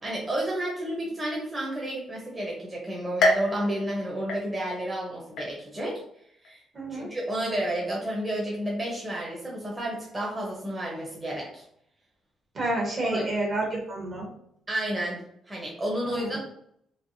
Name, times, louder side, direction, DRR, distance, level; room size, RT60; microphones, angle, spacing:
voice 1, 0.0-6.0 6.4-6.6 6.9-11.6 13.0-13.3 14.7-15.2 15.5-16.4, right 1 dB, 20° right, -4 dB, 0.8 m, -31 dB
sound 1, 3.2-4.9 5.4-5.9 6.4-6.5 7.5-7.6, left 1 dB, 80° left, 0.8 m, -28 dB
voice 2, 6.7-7.1 12.5-14.3 16.2-16.4, right 2 dB, 50° right, -1 dB, 1.1 m, -29 dB
3.2 x 2.1 x 2.6 m, 0.70 s
cardioid pair, 90°, 0 cm